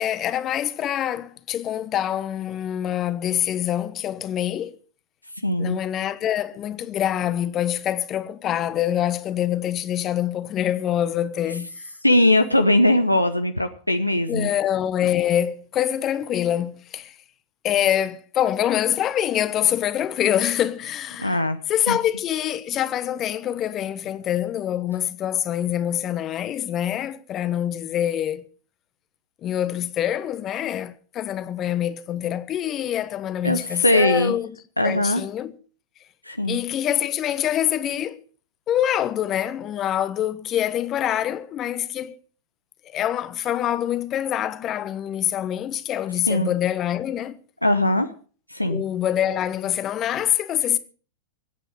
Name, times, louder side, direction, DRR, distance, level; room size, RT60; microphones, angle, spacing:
voice 1, 0.0-4.7 5.6-11.7 14.3-17.2 17.6-21.4 21.7-28.5 29.4-34.5 34.8-35.5 36.5-38.2 38.7-42.2 42.8-47.4 48.7-50.8, left 11 dB, 30° left, 1.1 m, -25 dB
voice 2, 5.4-5.8 12.0-14.5 21.2-21.6 21.9-22.0 33.4-34.4 34.8-35.2 36.2-36.6 46.3-46.5 47.6-48.1 48.5-48.8, left 1 dB, 85° left, 0.9 m, -20 dB
24.0 x 8.9 x 4.9 m
figure-of-eight pair, 90°, 0 cm